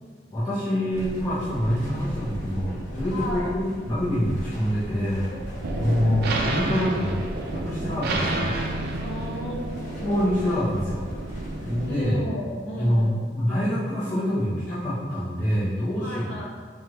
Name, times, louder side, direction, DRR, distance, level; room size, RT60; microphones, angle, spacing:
voice 1, 0.3-5.3 5.8-7.2 7.5-8.5 10.0-11.0 11.6-12.2 12.8-16.3, equal, 20° left, -12 dB, 0.8 m, -26 dB
sound 1, 0.9-11.9, equal, 45° left, 1.1 m, -37 dB
voice 2, 3.1-3.5 5.3-6.5 9.0-10.0 11.8-13.3 16.0-16.4, equal, 75° left, -4 dB, 0.9 m, -35 dB
sound 2, 5.6-12.2, right 2 dB, 60° right, 0.4 m, -30 dB
4.4 x 2.4 x 3.0 m, 1.5 s
head